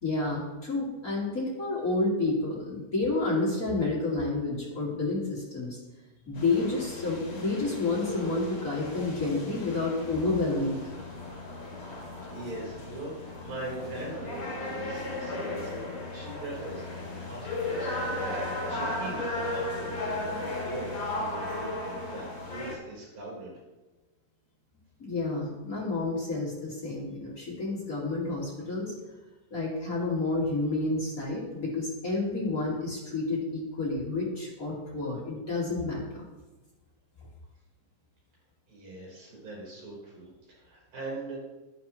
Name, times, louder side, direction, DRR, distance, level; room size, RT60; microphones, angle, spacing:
voice 1, 0.0-5.8 6.3-10.8 25.0-28.9 29.5-36.2, left 2 dB, 30° left, -5 dB, 2.0 m, -30 dB
sound 1, 6.3-22.7, left 2 dB, 45° left, 3.7 m, -35 dB
voice 2, 12.3-23.5 38.7-41.4, right 2 dB, 70° right, -5 dB, 5.9 m, -41 dB
12.0 x 10.0 x 3.1 m, 1.1 s
omnidirectional pair, 4.0 m